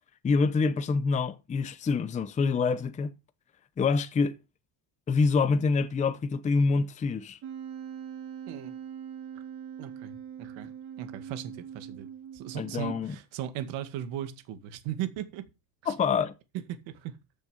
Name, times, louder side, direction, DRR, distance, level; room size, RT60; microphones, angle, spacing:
voice 1, 0.2-3.1 3.8-4.4 5.1-7.4 12.5-13.1 15.9-16.3, left 4 dB, 15° left, 0.6 m, -26 dB
Wind instrument woodwind instrument, 7.4-13.1, right 8 dB, 45° right, 2.6 m, -42 dB
voice 2, 8.5-8.8 9.8-15.5 15.8-15.9 16.5-17.2, right 11 dB, 85° right, 2.1 m, -38 dB
13.5 x 6.8 x 5.1 m
cardioid pair, 165°, 45 cm